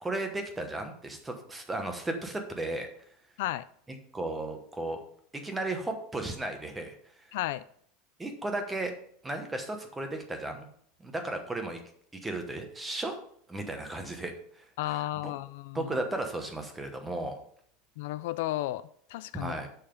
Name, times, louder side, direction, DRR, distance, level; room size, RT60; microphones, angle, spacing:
voice 1, 0.0-2.9 3.9-5.0 5.3-6.9 8.2-8.9 9.2-10.6 11.0-11.8 12.1-13.2 13.5-15.3 15.7-17.4 19.3-19.7, right 2 dB, 10° right, 5 dB, 1.0 m, -35 dB
voice 2, 7.3-7.6 14.8-15.9 18.0-18.8 19.1-19.5, left 15 dB, 60° left, 15 dB, 0.3 m, -33 dB
6.8 x 5.6 x 5.3 m, 0.62 s
supercardioid pair, 180°, 0 cm